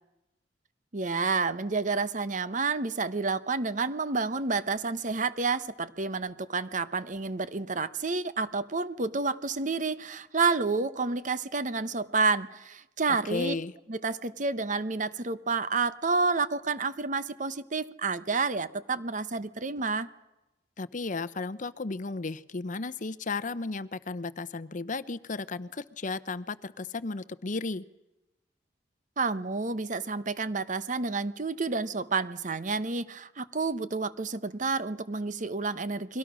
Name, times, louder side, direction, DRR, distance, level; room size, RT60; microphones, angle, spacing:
voice 1, 0.9-13.5 13.9-20.1 29.2-36.2, right 4 dB, 45° right, 14 dB, 1.0 m, -29 dB
voice 2, 13.2-13.7 20.8-27.8, left 3 dB, 45° left, 15 dB, 0.8 m, -34 dB
30.0 x 23.0 x 6.3 m, 0.98 s
head